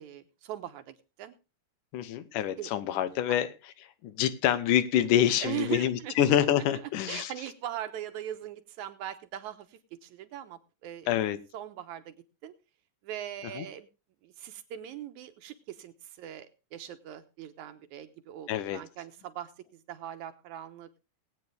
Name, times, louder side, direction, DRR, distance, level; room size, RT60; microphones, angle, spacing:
voice 1, 0.0-1.3 2.6-2.7 5.4-6.2 6.7-11.1 11.5-12.2 12.4-12.5 13.0-13.9 14.2-20.9, right 11 dB, 75° right, 9 dB, 2.4 m, -40 dB
voice 2, 1.9-3.5 4.0-7.3 11.1-11.4 13.6-13.7 18.5-18.8, left 11 dB, 90° left, 13 dB, 2.5 m, -26 dB
20.0 x 8.8 x 3.4 m, 0.29 s
omnidirectional pair, 3.5 m